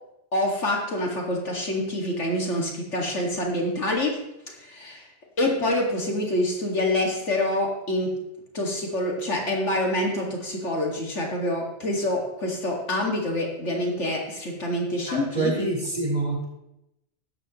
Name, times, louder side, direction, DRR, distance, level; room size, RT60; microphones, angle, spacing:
voice 1, 0.3-4.2 4.5-5.1 5.4-8.2 8.5-15.7, left 1 dB, 80° left, 0 dB, 2.6 m, -26 dB
voice 2, 15.1-16.4, right 3 dB, 35° right, -5 dB, 4.5 m, -26 dB
14.5 x 11.5 x 3.1 m, 0.87 s
omnidirectional pair, 1.2 m